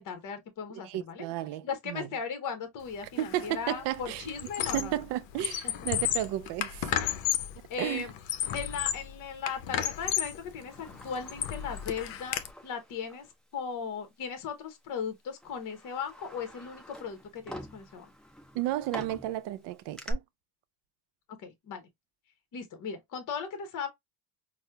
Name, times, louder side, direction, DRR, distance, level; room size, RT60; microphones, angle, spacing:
voice 1, 0.0-1.3 1.6-5.0 5.6-5.7 7.7-8.1 8.5-13.3 13.5-18.1 21.4-21.9 22.5-23.9, left 6 dB, 45° left, 0.8 m, -37 dB
voice 2, 0.8-2.1 3.2-4.3 4.7-6.9 7.8-8.1 18.5-20.2, right 14 dB, 65° right, 0.5 m, -33 dB
Squeak, 3.2-3.5 3.8-5.0 5.3-7.6 8.1-9.1 9.5-10.4 10.9-12.5, left 11 dB, 75° left, 0.6 m, -32 dB
Sliding door, 10.1-13.3 13.7-13.8 14.7-14.9 15.4-20.1, equal, ahead, 0.6 m, -47 dB
4.2 x 2.1 x 2.2 m
supercardioid pair, 100°, 46 cm